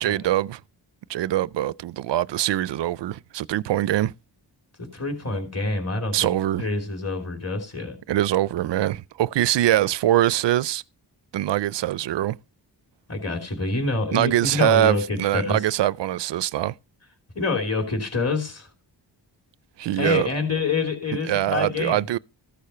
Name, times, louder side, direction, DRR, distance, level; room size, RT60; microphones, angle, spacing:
voice 1, 0.0-0.6 1.1-4.1 6.1-6.7 8.1-10.8 11.3-12.4 14.1-16.7 19.8-20.3 21.3-22.2, right 13 dB, 70° right, 0.5 m, -23 dB
voice 2, 4.8-6.3 6.6-8.0 13.1-15.6 17.3-18.7 20.0-22.0, left 3 dB, 35° left, 3.0 m, -27 dB
14.5 x 6.7 x 5.6 m
wide cardioid pair, 150°, 44 cm